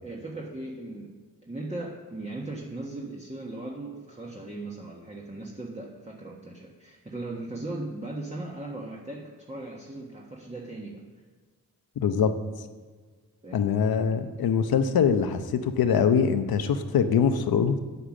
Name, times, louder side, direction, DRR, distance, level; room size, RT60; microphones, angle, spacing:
voice 1, 0.0-1.1 1.4-11.0 13.4-13.6, right 2 dB, 20° right, -2 dB, 1.5 m, -38 dB
voice 2, 12.0-12.3 13.5-17.8, left 7 dB, 85° left, 9 dB, 0.8 m, -23 dB
8.3 x 8.0 x 6.3 m, 1.5 s
cardioid pair, 55°, 35 cm